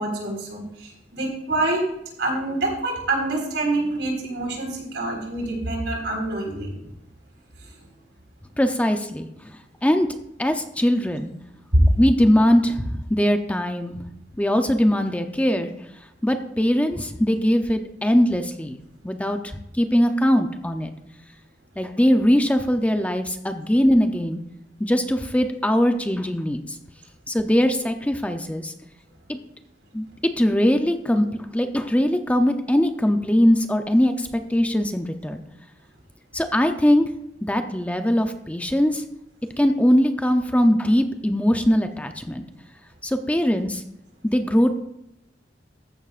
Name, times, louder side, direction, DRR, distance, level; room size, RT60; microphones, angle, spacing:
voice 1, 0.0-1.9 2.2-6.7 11.9-12.0, right 2 dB, 80° right, 0 dB, 4.4 m, -26 dB
voice 2, 8.6-10.1 10.4-11.3 12.0-14.0 14.4-15.7 16.2-18.8 19.0-19.4 19.8-20.9 21.8-24.4 24.8-26.8 27.3-28.7 29.3-29.4 29.9-30.0 30.4-31.2 31.5-35.4 36.3-37.1 37.4-39.0 39.6-42.4 43.0-43.8 44.2-44.7, equal, 10° left, 6 dB, 0.6 m, -21 dB
14.0 x 10.5 x 2.5 m, 0.81 s
head